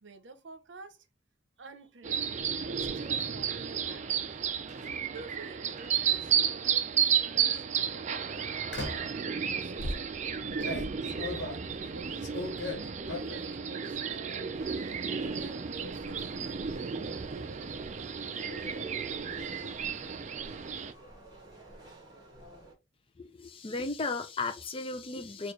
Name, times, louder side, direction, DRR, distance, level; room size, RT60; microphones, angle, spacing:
voice 1, 0.0-1.0 1.6-4.3 5.1-8.5 8.8-10.9 11.9-12.8 13.1-16.9, right 3 dB, 75° right, 0.7 m, -50 dB
sound 1, 2.0-20.9, right 7 dB, 40° right, 0.4 m, -33 dB
sound 2, 2.4-3.0 4.7-4.9 5.7-6.5 7.3-7.6 8.7-9.2 9.8-13.5 13.9-14.5 14.7-15.3, left 2 dB, 65° left, 1.2 m, -40 dB
sound 3, 14.5-22.7, right 1 dB, 20° right, 1.3 m, -50 dB
voice 2, 23.2-25.5, left 3 dB, 30° left, 0.5 m, -35 dB
4.4 x 2.4 x 3.1 m
head